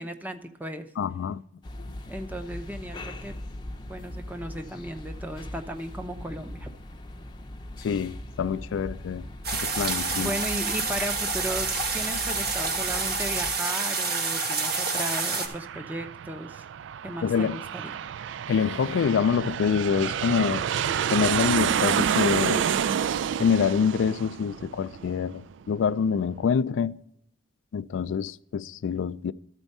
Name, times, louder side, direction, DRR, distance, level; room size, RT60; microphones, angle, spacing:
voice 1, 0.0-0.9 2.1-3.4 3.9-6.7 10.1-16.6 17.0-17.9, equal, 10° right, 0.7 m, -36 dB
voice 2, 1.0-1.4 7.8-9.2 9.5-10.3 17.2-17.6 18.5-20.6 21.1-22.6 23.4-27.0 27.7-29.3, left 6 dB, 80° left, 0.3 m, -26 dB
sound 1, 1.6-13.5, left 1 dB, 25° left, 0.7 m, -40 dB
sound 2, 9.4-15.5, right 4 dB, 55° right, 1.3 m, -28 dB
Aircraft, 14.5-25.6, right 8 dB, 75° right, 0.3 m, -29 dB
13.5 x 4.5 x 5.3 m
head